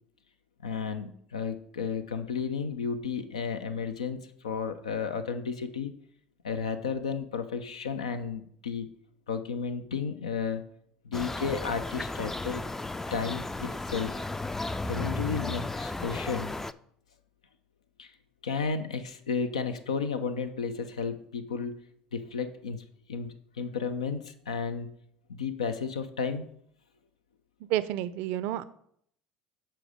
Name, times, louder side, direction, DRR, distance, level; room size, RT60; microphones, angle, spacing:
voice 1, 0.6-5.9 6.4-8.9 9.3-10.6 11.0-12.6 13.1-14.3 14.9-16.6 18.0-18.1 18.4-21.7 22.1-22.8 23.1-24.9 25.3-26.5, left 6 dB, 85° left, 9 dB, 0.4 m, -33 dB
sound 1, 11.1-16.7, left 2 dB, 10° left, 0.3 m, -34 dB
voice 2, 27.7-28.6, right 13 dB, 65° right, 15 dB, 0.4 m, -29 dB
7.6 x 4.3 x 4.9 m, 0.67 s
hypercardioid pair, 65°, 3 cm